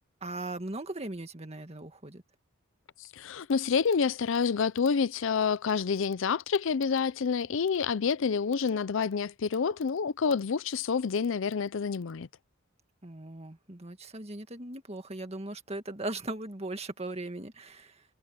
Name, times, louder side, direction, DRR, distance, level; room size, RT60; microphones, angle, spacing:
voice 1, 0.2-2.2 13.0-18.0, right 2 dB, 30° right, 1.9 m, -38 dB
voice 2, 3.1-12.3, left 6 dB, 65° left, 0.5 m, -28 dB
head